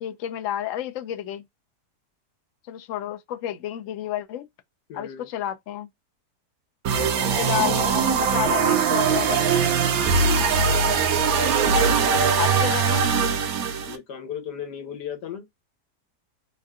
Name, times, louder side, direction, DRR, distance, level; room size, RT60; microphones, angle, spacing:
voice 1, 0.0-1.4 2.7-4.5 4.9-5.9 7.3-9.7 12.4-13.0, left 12 dB, 65° left, 0.8 m, -30 dB
voice 2, 4.9-5.3 6.9-7.7 8.4-8.6 10.1-10.5 13.9-15.5, left 9 dB, 85° left, 1.5 m, -36 dB
sound 1, 6.8-14.0, right 6 dB, 70° right, 1.0 m, -21 dB
3.6 x 2.2 x 3.5 m
omnidirectional pair, 1.8 m